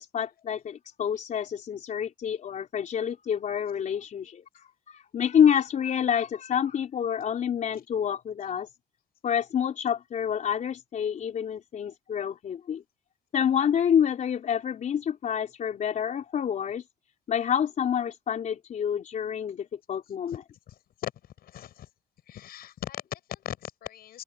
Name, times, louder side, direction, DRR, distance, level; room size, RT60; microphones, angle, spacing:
voice 1, 0.0-8.7 9.2-12.8 13.3-16.8 17.3-20.4, left 8 dB, 50° left, 4.0 m, -28 dB
voice 2, 20.7-21.1 21.4-21.9 22.3-24.2, left 12 dB, 65° left, 6.9 m, -39 dB
open air
cardioid pair, 110°, 17 cm